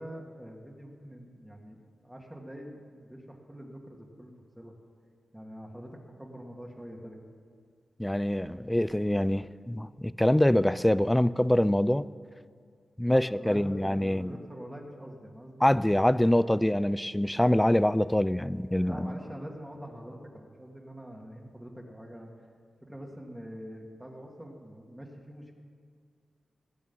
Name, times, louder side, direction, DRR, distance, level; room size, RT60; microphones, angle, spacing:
voice 1, 0.0-4.8 5.3-7.3 13.1-16.4 18.8-22.3 22.8-25.5, equal, 10° right, 0 dB, 2.0 m, -45 dB
voice 2, 8.0-12.1 13.0-14.3 15.6-19.0, left 1 dB, 10° left, 17 dB, 0.4 m, -25 dB
18.5 x 8.8 x 5.5 m, 2.1 s
cardioid pair, 65°, 0 cm